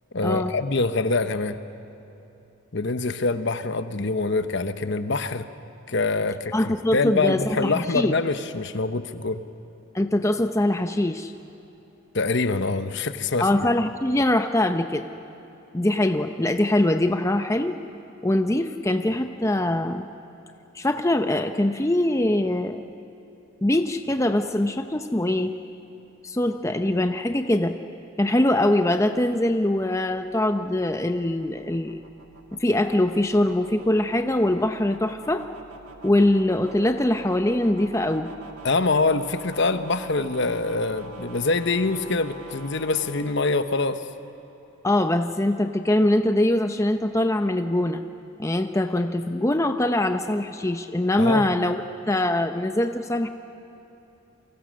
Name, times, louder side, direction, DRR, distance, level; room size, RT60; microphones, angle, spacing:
voice 1, 0.1-1.6 2.7-5.5 5.9-9.4 12.1-13.5 38.6-44.0 51.2-51.4, left 3 dB, 55° left, 10 dB, 1.0 m, -25 dB
voice 2, 6.5-8.1 9.9-11.3 13.4-15.1 15.7-17.8 18.2-20.1 20.7-22.8 23.6-25.5 26.2-27.8 28.2-32.0 32.6-35.5 36.0-38.3 44.8-48.0 48.4-51.8 52.1-53.3, left 1 dB, 15° left, 7 dB, 0.6 m, -23 dB
sound 1, 29.3-44.5, right 3 dB, 85° right, 2.1 m, -45 dB
30.0 x 24.0 x 6.4 m, 2.9 s
head